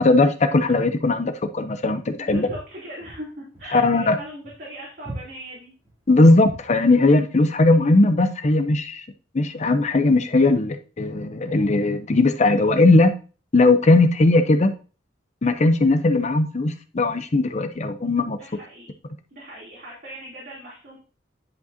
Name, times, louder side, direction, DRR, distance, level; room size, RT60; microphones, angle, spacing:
voice 1, 0.0-2.5 3.7-4.1 6.1-9.0 9.3-13.1 13.5-14.7 15.4-18.4, left 2 dB, 40° left, 8 dB, 0.6 m, -18 dB
voice 2, 2.2-5.7 18.2-18.9 19.3-21.0, equal, 50° right, -6 dB, 2.9 m, -39 dB
Walk footsteps, 2.3-6.8, right 1 dB, 15° right, 2.8 m, -40 dB
10.5 x 5.3 x 2.7 m, 0.35 s
head